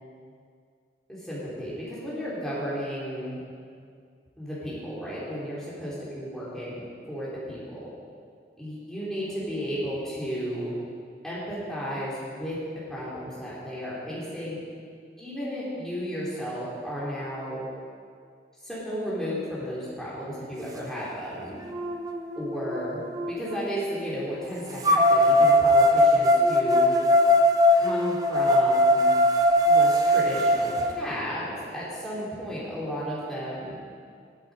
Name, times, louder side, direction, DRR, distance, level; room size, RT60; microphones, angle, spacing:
voice 1, 1.1-3.4 4.4-7.8 8.6-10.7 11.2-12.6 12.9-14.6 15.2-17.6 18.6-21.6 22.4-27.0 27.7-29.1 29.7-33.8, equal, 5° left, -9 dB, 3.9 m, -33 dB
sound 1, 21.0-21.1 21.7-23.6 24.8-30.9, left 1 dB, 20° right, 0.8 m, -20 dB
14.0 x 12.0 x 5.1 m, 2.2 s
head